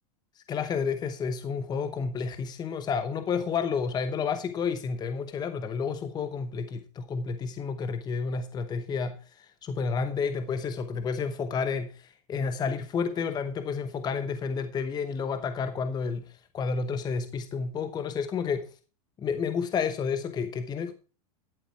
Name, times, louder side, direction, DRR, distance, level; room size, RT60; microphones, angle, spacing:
voice 1, 0.4-18.7 19.2-20.9, left 5 dB, 20° left, 1.0 m, -30 dB
11.0 x 8.2 x 4.6 m
supercardioid pair, 135°, 20 cm